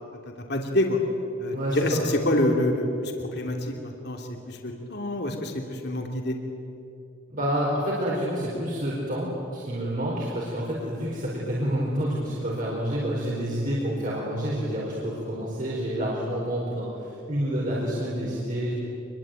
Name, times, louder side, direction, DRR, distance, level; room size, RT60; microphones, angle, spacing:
voice 1, 0.5-1.0 1.4-6.4, left 1 dB, 50° left, 2 dB, 2.9 m, -27 dB
voice 2, 1.5-2.0 7.3-18.7, equal, 40° right, -5 dB, 4.7 m, -28 dB
26.0 x 22.5 x 9.3 m, 2.8 s
head